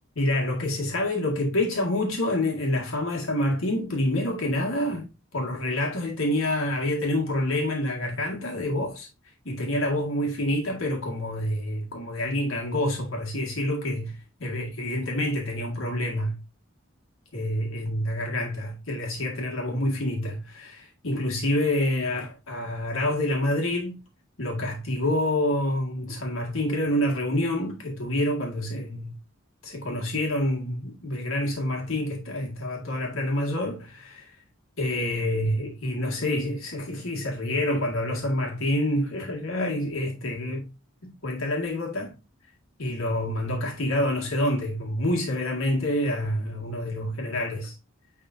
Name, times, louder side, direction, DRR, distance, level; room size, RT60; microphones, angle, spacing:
voice 1, 0.2-5.1 5.3-9.1 9.5-16.4 17.3-24.0 24.4-29.1 29.6-34.4 34.8-40.7 41.0-42.1 42.8-47.7, left 1 dB, 85° left, 1.9 m, -27 dB
9.9 x 3.7 x 2.6 m
head